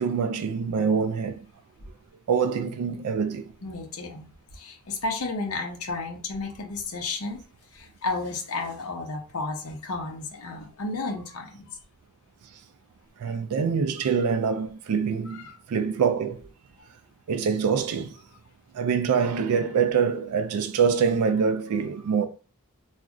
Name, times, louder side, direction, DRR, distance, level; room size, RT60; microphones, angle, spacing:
voice 1, 0.0-1.3 2.3-3.4 13.2-16.5 17.3-18.1 18.7-22.3, right 6 dB, 90° right, 0.3 m, -25 dB
voice 2, 3.6-7.4 7.7-11.8 13.3-13.4 15.3-15.5, left 3 dB, 75° left, 0.7 m, -33 dB
2.4 x 2.1 x 3.6 m
head